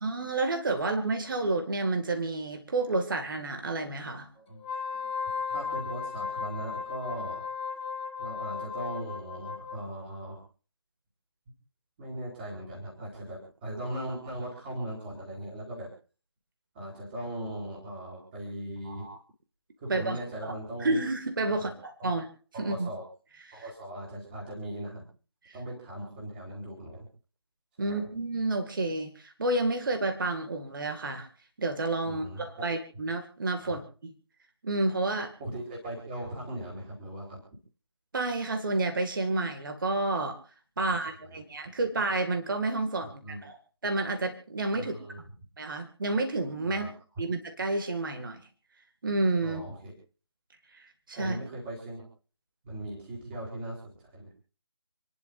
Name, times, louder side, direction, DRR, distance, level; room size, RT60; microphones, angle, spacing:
voice 1, 0.0-4.3 18.9-19.2 19.9-20.2 20.4-20.5 20.8-22.3 22.6-22.9 23.5-23.6 25.4-25.6 27.8-31.3 31.6-34.1 34.6-35.3 38.1-40.4 40.8-43.5 43.8-44.9 45.6-46.9 47.2-48.4 49.0-49.6 50.7-51.4, right 2 dB, 45° right, 5 dB, 2.2 m, -30 dB
Wind instrument woodwind instrument, 4.6-9.8, left 5 dB, 20° left, 2.8 m, -35 dB
voice 2, 5.5-7.4 8.2-10.4 12.0-15.9 16.7-19.1 19.8-21.0 21.5-21.7 22.0-22.2 22.5-23.0 23.5-25.0 25.5-27.1 27.8-28.0 32.0-32.7 32.9-33.0 33.6-33.8 35.4-37.4 41.2-41.4 43.0-43.4 44.7-45.2 46.7-46.9 49.4-49.9 51.2-52.1 52.6-54.3, right 1 dB, 20° right, -3 dB, 4.2 m, -39 dB
29.0 x 11.0 x 2.6 m, 0.39 s
figure-of-eight pair, 160°, 15 cm